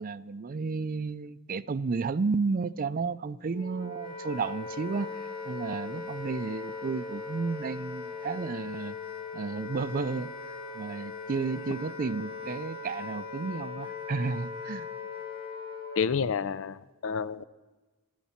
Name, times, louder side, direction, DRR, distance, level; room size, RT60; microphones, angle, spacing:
voice 1, 0.0-9.0 9.3-10.3 10.7-14.9, right 4 dB, 40° right, 15 dB, 0.4 m, -32 dB
Wind instrument woodwind instrument, 3.5-16.2, left 4 dB, 50° left, 1.9 m, -39 dB
voice 2, 16.0-17.4, left 6 dB, 65° left, 16 dB, 0.5 m, -29 dB
21.0 x 12.5 x 4.3 m, 1.2 s
head